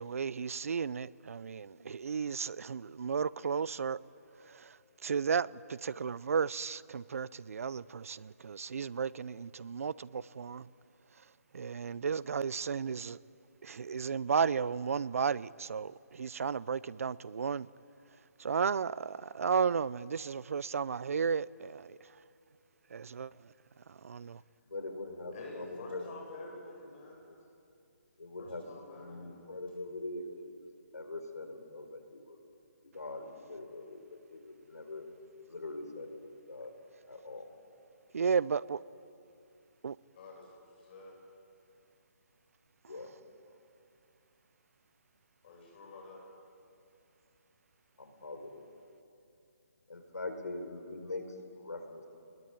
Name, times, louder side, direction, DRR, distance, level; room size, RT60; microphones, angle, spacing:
voice 1, 0.0-4.0 4.4-4.8 5.0-10.7 11.5-13.2 13.6-17.7 18.4-22.0 22.9-23.5 23.9-24.4 38.1-38.8 39.8-40.0, right 6 dB, 60° right, 0.7 m, -34 dB
voice 2, 24.7-26.1 26.4-26.5 27.0-27.4 28.2-30.7 30.9-32.4 32.8-35.1 35.5-36.7 37.1-37.5 42.9-43.1 48.0-48.6 49.9-52.0, left 2 dB, 85° left, 4.9 m, -43 dB
voice 3, 25.3-27.2 28.4-29.4 40.1-41.2 45.4-46.3, left 2 dB, 35° left, 8.0 m, -48 dB
29.5 x 21.5 x 9.2 m
hypercardioid pair, 160°, 9 cm